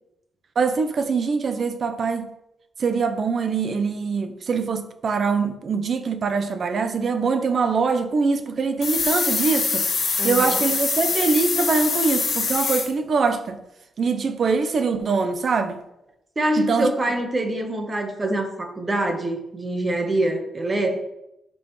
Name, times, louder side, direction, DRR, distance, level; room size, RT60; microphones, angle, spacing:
voice 1, 0.6-2.3 2.8-13.6 14.0-15.8 16.6-16.9, right 4 dB, 35° right, 0.7 m, -23 dB
sound 1, 8.8-12.8, left 4 dB, 45° left, 1.8 m, -24 dB
voice 2, 10.2-10.7 16.4-21.0, right 1 dB, 20° right, 1.1 m, -25 dB
11.5 x 5.4 x 3.1 m
wide cardioid pair, 180°, 0 cm